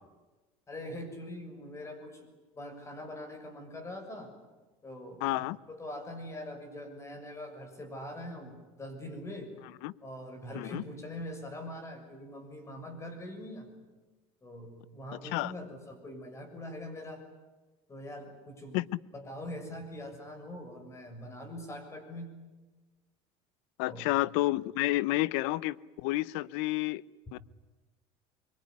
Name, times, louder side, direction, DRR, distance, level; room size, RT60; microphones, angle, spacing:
voice 1, 0.7-2.3 2.6-4.3 4.8-5.2 5.7-9.5 10.0-13.7 14.4-17.2 17.9-18.8 19.1-22.3 23.8-24.1, left 1 dB, 20° left, 6 dB, 6.9 m, -43 dB
voice 2, 5.2-5.6 9.8-9.9 10.5-10.8 15.3-15.5 18.7-19.0 23.8-27.0 27.3-27.4, left 18 dB, 80° left, 20 dB, 0.8 m, -30 dB
25.0 x 24.0 x 9.8 m, 1.2 s
cardioid pair, 130°, 14 cm